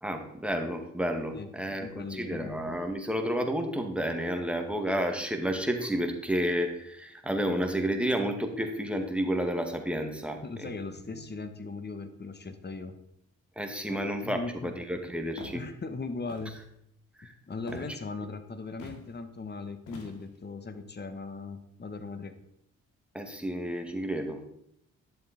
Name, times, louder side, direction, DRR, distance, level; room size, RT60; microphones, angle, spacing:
voice 1, 0.0-10.7 13.6-15.6 17.2-17.3 17.7-17.8 23.1-24.5, equal, 5° right, 4 dB, 2.0 m, -31 dB
voice 2, 1.3-2.5 10.4-13.0 13.9-14.7 15.5-16.6 17.2-22.3, left 3 dB, 35° left, 10 dB, 1.4 m, -39 dB
Walk footsteps, 15.4-15.6 16.3-16.7 17.7-18.0 18.8-19.0 19.9-20.4, left 3 dB, 85° left, 2.3 m, -45 dB
10.5 x 7.4 x 4.3 m, 0.76 s
cardioid pair, 60°, 30 cm